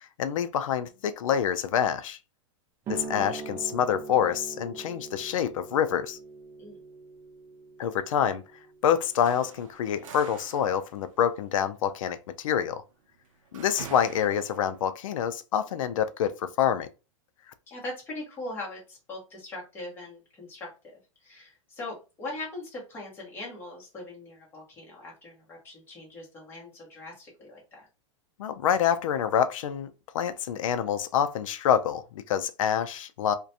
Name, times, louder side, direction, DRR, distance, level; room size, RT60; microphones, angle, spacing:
voice 1, 0.2-2.2 2.9-6.2 7.8-8.4 8.8-12.8 13.5-16.9 28.4-33.3, left 9 dB, 85° left, 0.4 m, -27 dB
sound 1, 2.9-10.0, right 4 dB, 15° right, 0.3 m, -42 dB
sound 2, 9.0-14.9, right 8 dB, 80° right, 0.5 m, -47 dB
voice 2, 17.7-27.9, left 2 dB, 15° left, 0.9 m, -41 dB
2.4 x 2.2 x 2.6 m
supercardioid pair, 165°, 16 cm